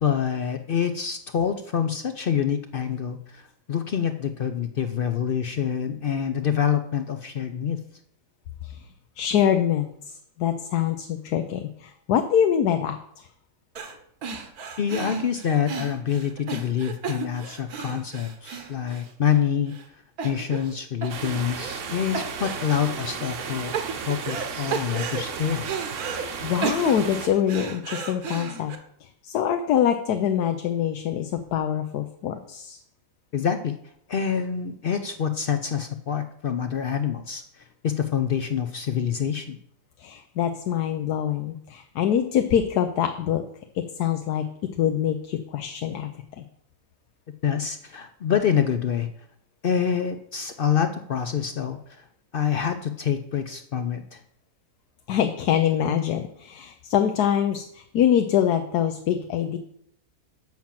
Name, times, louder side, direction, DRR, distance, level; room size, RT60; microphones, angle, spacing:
voice 1, 0.0-7.8 14.8-19.7 20.2-23.7 24.0-25.7 33.3-33.7 34.1-39.6 47.4-49.1 49.6-52.1 52.3-54.2, left 8 dB, 70° left, 9 dB, 0.5 m, -26 dB
voice 2, 9.2-13.3 26.4-28.7 29.0-32.8 40.0-43.4 43.7-44.5 44.8-46.1 46.4-46.5 55.1-59.6, left 9 dB, 85° left, 7 dB, 1.3 m, -24 dB
sound 1, 13.8-14.0 14.2-19.4 19.7-19.8 20.2-20.8 21.0-21.9 22.1-22.9 23.4-24.5 24.7-26.2 26.6-28.8, right 5 dB, 75° right, 1.6 m, -33 dB
sound 2, 21.1-27.3, right 6 dB, 55° right, 1.1 m, -34 dB
7.5 x 5.9 x 7.3 m, 0.70 s
omnidirectional pair, 1.6 m